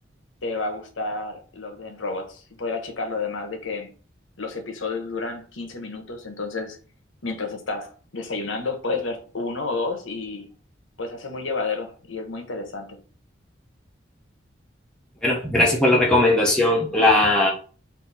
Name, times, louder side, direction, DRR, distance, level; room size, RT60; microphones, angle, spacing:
voice 1, 0.4-3.9 4.4-6.8 7.2-10.5 11.0-13.0, left 3 dB, 85° left, 1.0 m, -30 dB
voice 2, 15.2-17.5, left 1 dB, 5° left, 0.7 m, -18 dB
4.1 x 2.7 x 4.1 m
head